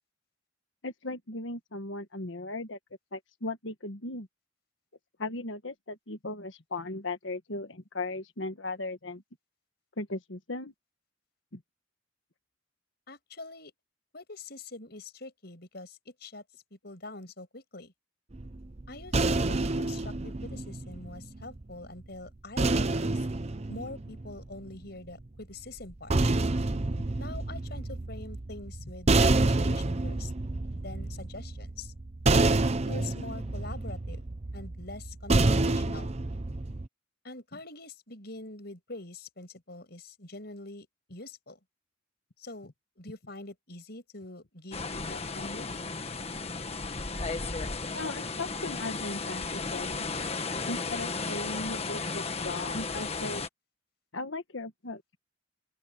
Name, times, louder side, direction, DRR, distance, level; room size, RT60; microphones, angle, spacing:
voice 1, 0.8-2.8 3.1-4.3 5.2-9.2 10.0-10.7 11.5-11.6 47.9-50.1 50.7-53.5 54.1-55.0, left 2 dB, 75° left, 1.6 m, -37 dB
voice 2, 13.1-13.7 14.1-16.4 16.7-17.9 18.9-23.3 23.7-26.1 27.2-29.1 29.4-30.3 30.8-31.9 32.9-36.1 37.2-41.6 42.4-42.7 43.0-45.7, left 2 dB, 55° left, 6.8 m, -44 dB
sound 1, 18.3-21.6 22.6-24.8 25.8-36.9, right 2 dB, 35° right, 0.7 m, -28 dB
sound 2, 44.7-53.5, left 4 dB, 30° left, 1.5 m, -34 dB
open air
head